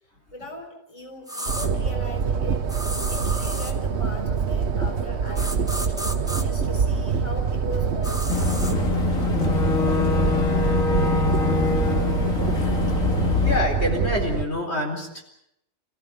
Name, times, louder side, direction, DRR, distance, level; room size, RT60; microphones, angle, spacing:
voice 1, 0.3-2.6 3.1-5.9 6.4-8.6, left 1 dB, 25° left, 3 dB, 4.2 m, -39 dB
sound 1, 1.3-1.7 2.7-3.8 5.4-6.4 8.0-8.8, right 1 dB, 5° right, 1.8 m, -32 dB
sound 2, 1.5-14.4, right 6 dB, 55° right, 1.3 m, -25 dB
Boat Water vehicle / Engine, 8.3-13.6, left 4 dB, 85° left, 2.4 m, -23 dB
voice 2, 13.4-15.2, left 1 dB, 55° left, 1 dB, 4.4 m, -26 dB
28.5 x 15.5 x 8.5 m, 0.81 s
omnidirectional pair, 1.4 m